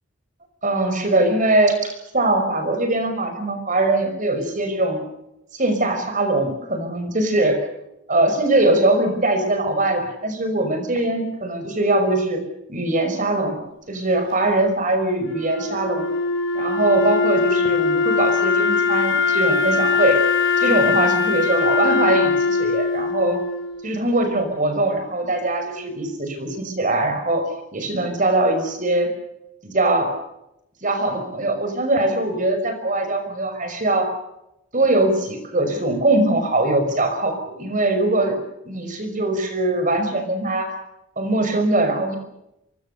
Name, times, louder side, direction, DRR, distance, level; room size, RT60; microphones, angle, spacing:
voice 1, 0.6-5.1 5.5-7.6 8.1-12.4 12.7-13.6 13.9-16.1 16.5-20.2 20.6-23.4 23.8-27.4 27.7-29.1 29.6-30.1 30.8-34.1 34.7-38.4 38.7-40.7 41.2-42.2, right 2 dB, 40° right, 7 dB, 5.6 m, -21 dB
Wind instrument woodwind instrument, 15.2-24.3, left 4 dB, 65° left, 4.6 m, -21 dB
25.5 x 23.0 x 6.7 m, 0.85 s
head